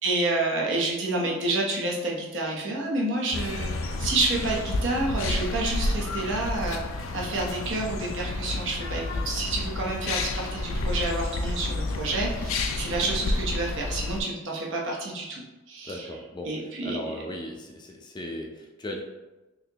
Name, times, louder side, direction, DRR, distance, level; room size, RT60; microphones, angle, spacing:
voice 1, 0.0-6.8 7.1-15.4 15.7-16.1 16.4-17.2, right 2 dB, 65° right, -2 dB, 0.9 m, -29 dB
sound 1, 3.3-14.2, left 2 dB, 80° left, 0.4 m, -30 dB
voice 2, 15.8-16.5 16.8-19.0, left 1 dB, 20° left, 1 dB, 0.4 m, -37 dB
4.0 x 2.9 x 2.8 m, 1.1 s
head